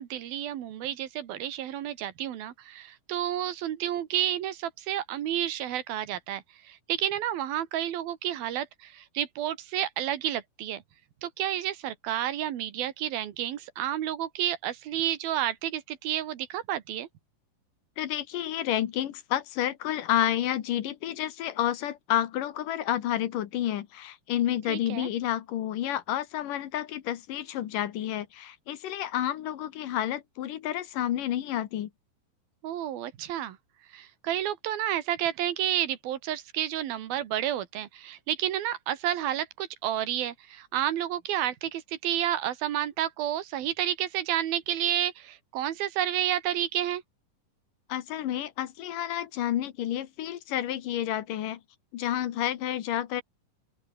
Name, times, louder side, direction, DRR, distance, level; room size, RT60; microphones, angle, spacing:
voice 1, 0.0-10.8 11.2-17.1 24.7-25.1 32.6-33.6 33.9-47.0, right 11 dB, 90° right, 3.6 m, -30 dB
voice 2, 18.0-31.9 47.9-51.6 51.9-53.2, left 12 dB, 70° left, 2.9 m, -30 dB
open air
omnidirectional pair, 4.1 m